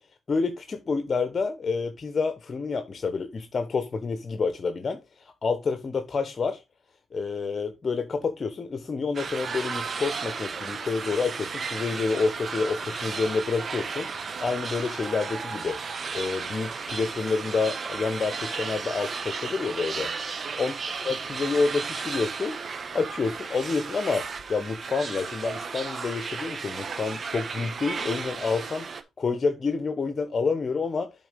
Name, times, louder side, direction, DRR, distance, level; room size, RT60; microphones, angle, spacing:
voice 1, 0.3-6.6 7.1-14.1 14.4-20.7 21.0-22.6 22.9-28.9 29.2-31.1, left 4 dB, 40° left, 1.1 m, -28 dB
sound 1, 9.1-29.0, right 5 dB, 45° right, 1.1 m, -34 dB
8.0 x 3.9 x 5.2 m
cardioid pair, 90°, 0 cm